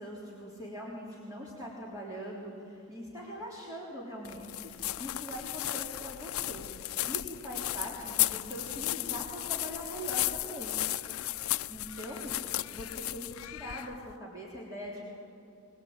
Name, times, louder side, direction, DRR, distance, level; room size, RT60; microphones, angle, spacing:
voice 1, 0.0-10.8 11.7-12.3 12.7-15.2, equal, 15° right, -5 dB, 3.4 m, -42 dB
sound 1, 4.3-14.1, left 15 dB, 80° left, 0.4 m, -34 dB
23.0 x 19.5 x 8.8 m, 2.7 s
head